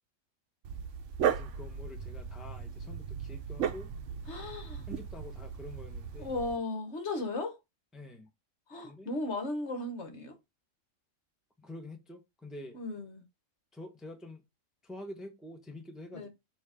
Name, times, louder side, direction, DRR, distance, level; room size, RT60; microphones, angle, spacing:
Dog, 0.6-6.6, right 8 dB, 70° right, 0.9 m, -36 dB
voice 1, 1.3-3.9 4.9-6.3 7.9-8.3 8.8-9.1 11.6-12.8 13.7-14.4 14.8-16.3, left 1 dB, ahead, 1.0 m, -47 dB
voice 2, 4.3-4.9 6.2-7.6 8.7-10.4 12.7-13.2 16.1-16.3, left 2 dB, 55° left, 1.5 m, -36 dB
7.1 x 2.9 x 5.0 m
omnidirectional pair, 1.4 m